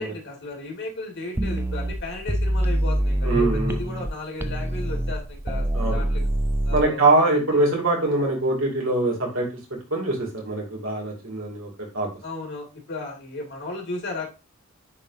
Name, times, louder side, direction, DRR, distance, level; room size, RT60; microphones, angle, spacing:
voice 1, 0.0-6.3 6.6-7.6 12.2-14.3, left 2 dB, 55° left, 0 dB, 2.1 m, -35 dB
sound 1, 1.4-4.1 4.4-6.8, right 1 dB, 10° right, 0.3 m, -25 dB
voice 2, 3.2-3.8 5.7-6.0 6.7-9.5 9.9-12.1, right 2 dB, 65° right, 0 dB, 2.3 m, -23 dB
9.6 x 3.7 x 2.6 m, 0.29 s
head